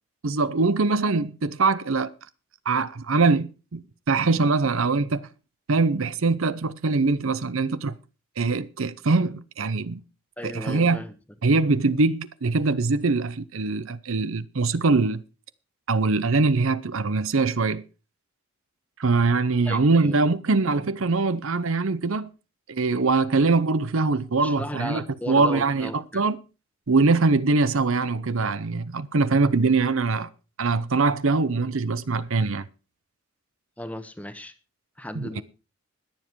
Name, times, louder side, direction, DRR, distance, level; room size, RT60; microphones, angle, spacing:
voice 1, 0.2-2.1 2.7-5.3 5.7-7.9 8.4-10.0 10.4-11.0 11.4-15.2 15.9-17.8 19.0-22.3 22.7-26.4 26.9-30.3 30.6-32.7 35.1-35.4, right 3 dB, 65° right, 0.7 m, -23 dB
voice 2, 10.4-11.1 19.6-20.1 24.4-26.2 33.8-34.5 35.0-35.4, left 1 dB, 5° left, 1.1 m, -36 dB
20.5 x 7.4 x 4.6 m
head